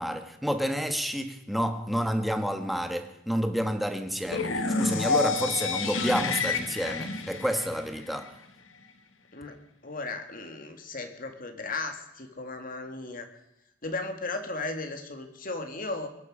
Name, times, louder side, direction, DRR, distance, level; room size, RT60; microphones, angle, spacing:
voice 1, 0.0-8.4, equal, ahead, 1.4 m, -29 dB
sound 1, 4.3-8.3, left 4 dB, 85° left, 1.6 m, -29 dB
voice 2, 9.8-13.3 13.8-16.1, left 3 dB, 45° left, 2.1 m, -35 dB
22.0 x 11.5 x 5.0 m
head